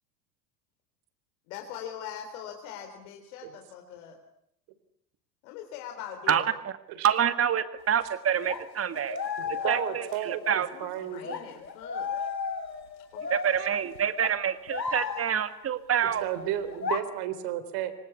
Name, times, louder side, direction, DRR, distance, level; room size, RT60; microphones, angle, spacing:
voice 1, 1.5-4.2 5.4-6.5 9.6-10.2 10.7-12.1 13.1-13.2, left 9 dB, 55° left, 4 dB, 4.0 m, -42 dB
voice 2, 6.3-6.7 7.0-9.2 9.5-10.7 13.3-16.3, right 8 dB, 30° right, 12 dB, 2.1 m, -27 dB
sound 1, 7.8-7.9 8.4-10.7 11.2-15.5 16.6-17.0, left 5 dB, 85° left, 2.0 m, -34 dB
voice 3, 9.4-11.4 16.2-17.9, right 11 dB, 50° right, 13 dB, 3.9 m, -33 dB
26.0 x 25.0 x 8.5 m, 0.74 s
figure-of-eight pair, 80°, 50 cm